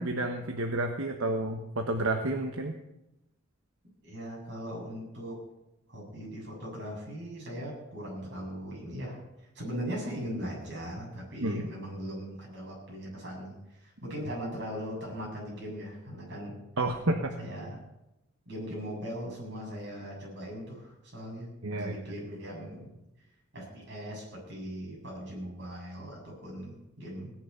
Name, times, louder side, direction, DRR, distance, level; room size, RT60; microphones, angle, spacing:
voice 1, 0.0-2.7 11.4-11.6 16.8-17.5 21.6-21.9, right 2 dB, 75° right, 4 dB, 1.2 m, -30 dB
voice 2, 4.0-5.4 5.9-9.2 9.5-16.5 17.4-17.8 18.5-22.9 23.5-27.3, equal, 55° right, -3 dB, 7.7 m, -39 dB
17.5 x 10.5 x 6.9 m, 0.92 s
head